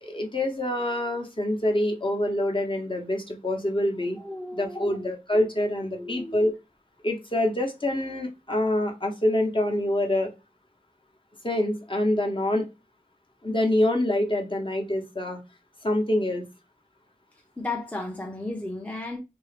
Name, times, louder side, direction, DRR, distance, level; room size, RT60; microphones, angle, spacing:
voice 1, 0.0-4.2 4.5-6.5 7.0-10.3 11.4-12.7 13.4-15.4 15.8-16.4, left 1 dB, 35° left, 0.9 m, -26 dB
voice 2, 4.2-5.1 5.9-6.4 17.6-19.2, left 2 dB, 10° left, 0.6 m, -34 dB
2.8 x 2.7 x 3.2 m
wide cardioid pair, 65°, 15 cm